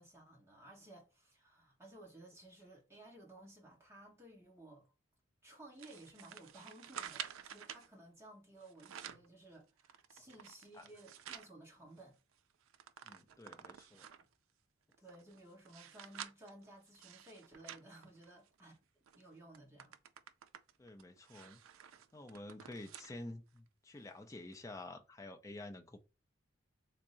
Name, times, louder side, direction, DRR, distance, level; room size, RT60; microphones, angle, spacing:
voice 1, 0.0-4.9 5.4-12.2 15.0-18.7 19.2-20.0, right 1 dB, 15° right, 1.1 m, -57 dB
sound 1, 5.8-7.9 8.6-9.3 9.8-11.5 12.0-12.1 12.3-14.3 14.9-18.7 19.1-19.2 19.5-23.2 23.6-23.7 24.5-24.6, right 9 dB, 80° right, 0.4 m, -51 dB
voice 2, 13.0-14.1 20.8-21.6 22.1-26.0, left 2 dB, 15° left, 0.4 m, -49 dB
3.5 x 2.0 x 3.8 m
head